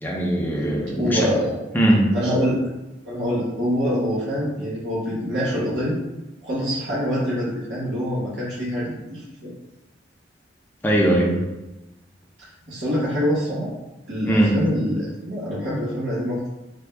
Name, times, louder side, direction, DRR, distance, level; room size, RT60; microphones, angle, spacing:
voice 1, 0.0-1.3 1.7-2.1 10.8-11.4 14.2-14.6, right 1 dB, 10° left, -2 dB, 0.5 m, -20 dB
voice 2, 0.9-1.5 2.1-2.6 3.0-6.0 6.4-9.5 12.7-13.7 14.1-16.5, equal, 75° right, -10 dB, 1.0 m, -25 dB
3.4 x 2.2 x 3.3 m, 1.0 s
head